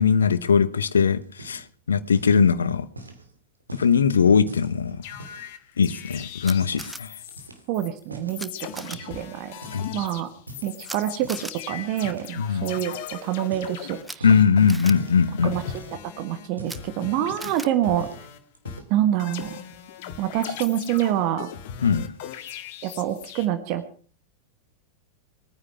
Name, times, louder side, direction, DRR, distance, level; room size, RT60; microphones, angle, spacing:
voice 1, 0.0-1.6 1.9-2.9 3.7-5.0 5.8-7.1 9.7-9.9 12.4-12.6 14.2-15.5 21.8-22.1, left 6 dB, 70° left, 1.1 m, -20 dB
sound 1, 1.2-1.8 2.1-2.5 3.0-5.5 5.9-6.9 7.3-8.4 8.9-9.4 9.6-11.5 12.0-12.3 12.7-13.0 13.4-14.5 14.9-15.2 15.6-16.1 16.4-17.7 18.0-18.3 18.5-19.0, right 1 dB, 80° right, 2.7 m, -44 dB
sound 2, 5.0-7.5 7.7-7.9 8.3-16.5 16.7-18.4 18.6-23.5, left 9 dB, 50° left, 1.8 m, -39 dB
Camera, 6.4-7.0 8.4-8.5 8.7-9.0 10.8-11.0 11.3-11.5 14.0-14.2 14.7-14.9 16.6-16.8 17.4-17.7, right 2 dB, 5° right, 0.9 m, -37 dB
voice 2, 7.7-9.5 9.9-10.3 10.6-14.3 15.4-15.6 16.2-18.1 18.9-19.6 20.2-21.5 22.8-23.8, right 12 dB, 45° right, 1.5 m, -26 dB
21.5 x 9.8 x 5.8 m
figure-of-eight pair, 90°, 0 cm